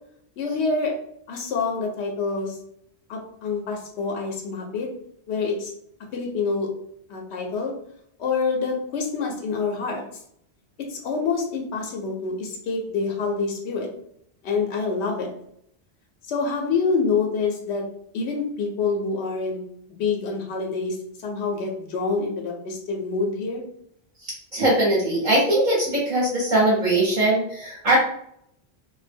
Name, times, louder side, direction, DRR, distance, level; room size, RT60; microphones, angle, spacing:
voice 1, 0.4-0.9 1.3-2.6 3.1-4.9 5.3-5.7 6.1-6.7 7.1-7.7 8.2-10.2 10.9-13.9 14.4-15.3 16.2-17.8 18.1-19.6 19.9-21.0 21.2-23.6, left 4 dB, 90° left, 1 dB, 0.8 m, -26 dB
voice 2, 24.2-28.0, right 1 dB, 50° right, -5 dB, 0.8 m, -21 dB
2.2 x 2.0 x 3.3 m, 0.72 s
omnidirectional pair, 1.1 m